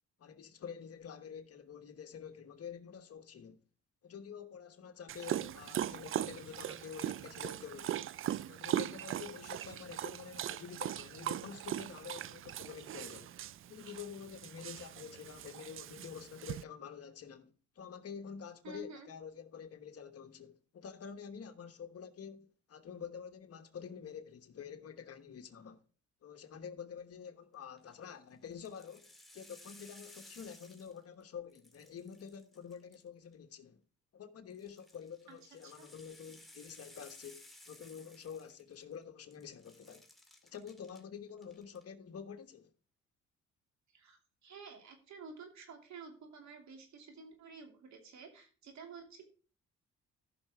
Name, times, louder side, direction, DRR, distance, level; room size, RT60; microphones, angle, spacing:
voice 1, 0.2-3.6 4.0-8.1 8.5-13.3 13.7-25.8 26.2-33.8 34.1-40.0 40.4-42.7, left 7 dB, 50° left, 1.2 m, -48 dB
Dog, 5.1-16.6, right 12 dB, 45° right, 0.4 m, -40 dB
voice 2, 18.6-19.1 35.6-35.9 43.9-49.3, right 4 dB, 65° right, 2.8 m, -51 dB
sound 1, 27.6-28.0 28.5-31.2 31.5-33.3 34.5-39.0 39.3-41.0 41.4-41.8, left 1 dB, ahead, 2.1 m, -58 dB
14.0 x 5.9 x 3.5 m
cardioid pair, 90°, 30 cm